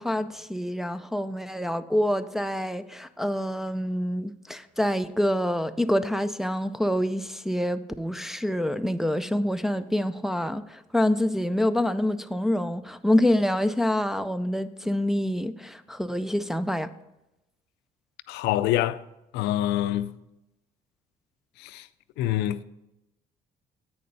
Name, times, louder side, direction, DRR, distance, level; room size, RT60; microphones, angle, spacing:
voice 1, 0.0-16.9, left 1 dB, ahead, 0.4 m, -26 dB
voice 2, 18.3-19.0 19.3-20.1 21.6-21.9 22.2-22.6, left 13 dB, 85° left, 0.4 m, -26 dB
8.6 x 6.7 x 5.4 m
cardioid pair, 110°, 17 cm